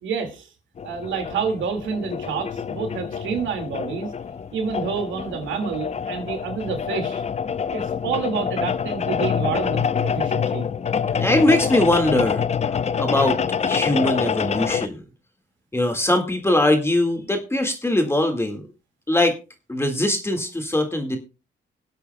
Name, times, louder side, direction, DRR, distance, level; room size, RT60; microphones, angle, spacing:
voice 1, 0.0-0.5 0.8-4.1 4.5-7.2 7.7-10.7, right 6 dB, 75° right, 2.1 m, -28 dB
sound 1, 0.8-14.9, left 7 dB, 35° left, 0.6 m, -26 dB
voice 2, 11.1-12.4 12.7-15.0 15.7-18.7 19.1-19.4 19.7-21.2, left 1 dB, 10° left, 1.8 m, -21 dB
24.5 x 8.3 x 2.2 m
cardioid pair, 90°, 20 cm